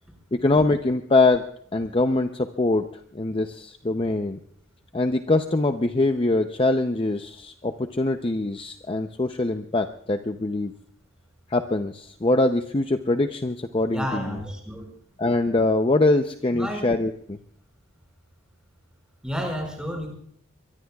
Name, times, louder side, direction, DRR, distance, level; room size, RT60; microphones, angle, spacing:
voice 1, 0.3-1.4 1.7-2.9 3.1-4.4 4.9-10.7 11.5-14.4 15.2-17.4, left 2 dB, 25° left, 7 dB, 0.6 m, -23 dB
voice 2, 13.8-14.9 16.5-16.9 19.2-20.1, equal, 5° right, 1 dB, 5.5 m, -31 dB
23.0 x 23.0 x 2.4 m, 0.64 s
head